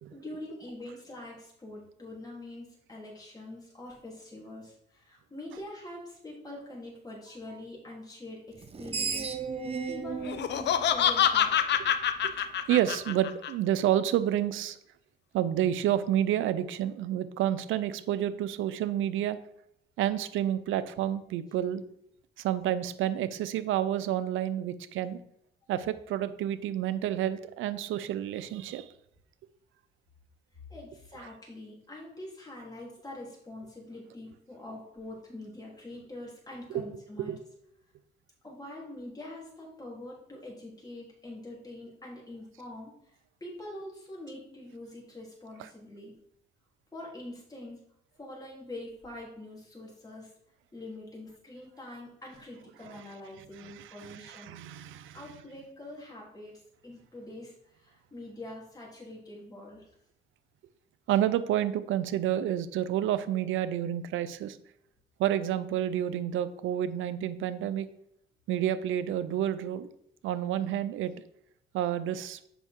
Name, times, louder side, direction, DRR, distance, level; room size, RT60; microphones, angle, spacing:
voice 1, 0.1-9.3 9.9-11.8 30.7-37.3 38.4-46.2 46.9-47.8 48.2-50.3 50.7-54.6 55.1-56.5 56.8-59.9, left 1 dB, 20° left, -4 dB, 3.5 m, -44 dB
Screech, 8.6-11.8, right 5 dB, 30° right, 0.8 m, -35 dB
Laughter, 10.2-13.5, left 9 dB, 60° left, 0.7 m, -26 dB
voice 2, 12.2-14.8 15.3-19.4 20.0-21.8 22.4-25.2 25.7-28.9 36.7-36.8 37.3-37.4 45.6-45.7 53.6-55.2 61.1-64.6 65.2-67.9 68.5-69.9 70.2-71.1 71.7-72.4, right 11 dB, 80° right, 14 dB, 0.6 m, -29 dB
7.8 x 5.4 x 4.6 m, 0.73 s
cardioid pair, 90°, 20 cm